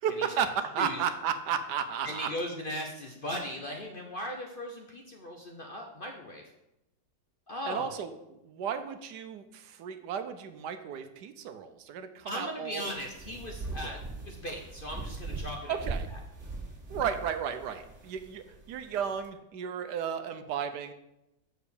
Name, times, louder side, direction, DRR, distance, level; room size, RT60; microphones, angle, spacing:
voice 1, 0.0-2.3 7.7-12.9 13.8-13.9 15.7-16.1 16.9-20.9, right 8 dB, 75° right, 9 dB, 1.2 m, -34 dB
voice 2, 2.0-6.4 7.5-7.9 12.2-14.0 14.2-15.7 16.1-16.2, equal, 45° left, 1 dB, 0.7 m, -38 dB
sound 1, 12.8-19.3, right 3 dB, 40° right, 2.0 m, -41 dB
6.6 x 4.9 x 6.8 m, 0.89 s
omnidirectional pair, 1.9 m